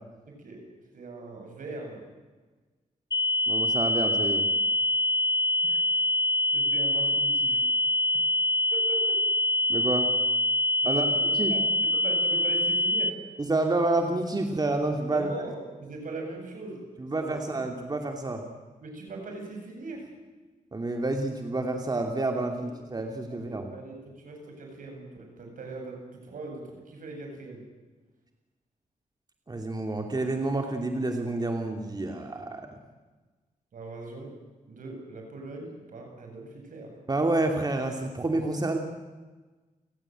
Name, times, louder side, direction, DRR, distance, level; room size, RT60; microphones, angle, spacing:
voice 1, 0.3-0.6 0.9-2.0 5.6-6.0 6.5-7.6 8.7-9.2 10.8-11.6 12.0-13.1 15.1-16.9 17.1-17.6 18.8-20.1 22.6-22.7 23.4-27.6 33.7-34.3 34.7-36.9, right 3 dB, 75° right, 2 dB, 7.9 m, -40 dB
sound 1, 3.1-13.1, left 1 dB, 25° left, 0.9 m, -25 dB
voice 2, 3.5-4.5 9.7-10.1 10.8-11.0 11.3-11.5 13.4-15.3 17.0-18.4 20.7-23.7 29.5-32.7 37.1-38.8, right 2 dB, 30° right, 3 dB, 2.6 m, -29 dB
30.0 x 16.5 x 9.2 m, 1.3 s
cardioid pair, 90°, 14 cm